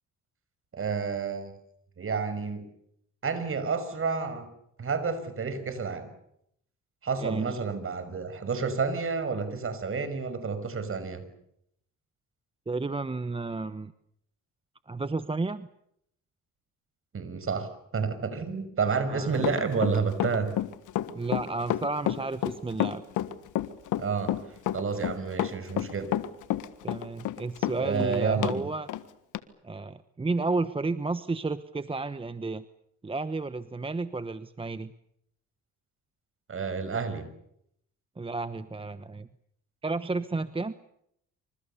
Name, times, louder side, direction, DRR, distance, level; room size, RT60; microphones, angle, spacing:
voice 1, 0.7-1.5 2.0-2.7 3.2-4.5 4.8-6.1 7.0-11.3 17.1-20.6 24.0-24.3 24.7-26.1 27.8-28.7 36.5-37.3, right 5 dB, 45° right, 11 dB, 6.1 m, -30 dB
voice 2, 7.2-7.6 12.7-13.9 14.9-15.7 19.1-19.5 19.9-20.0 21.1-23.0 26.8-28.9 29.6-32.6 33.0-34.9 38.2-39.3 39.8-40.7, right 3 dB, 20° right, 13 dB, 1.0 m, -32 dB
Run, 19.4-28.6 28.9-29.0 29.3-29.4, left 13 dB, 85° left, 1.6 m, -29 dB
27.0 x 26.0 x 7.0 m, 0.74 s
cardioid pair, 90°, 30 cm